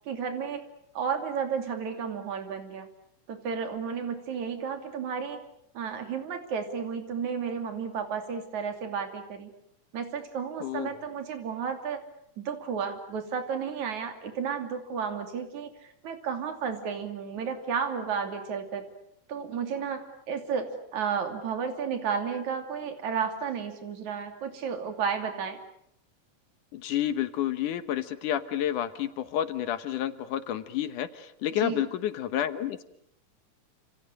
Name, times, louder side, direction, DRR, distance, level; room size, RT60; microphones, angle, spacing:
voice 1, 0.1-0.6 0.9-2.9 3.3-5.4 5.7-9.5 9.9-12.0 12.4-18.8 19.3-25.6 31.6-31.9, right 6 dB, 65° right, 6 dB, 4.2 m, -32 dB
voice 2, 10.6-11.0 26.7-32.8, left 11 dB, 75° left, 11 dB, 2.7 m, -30 dB
29.0 x 27.5 x 6.6 m, 0.72 s
omnidirectional pair, 3.7 m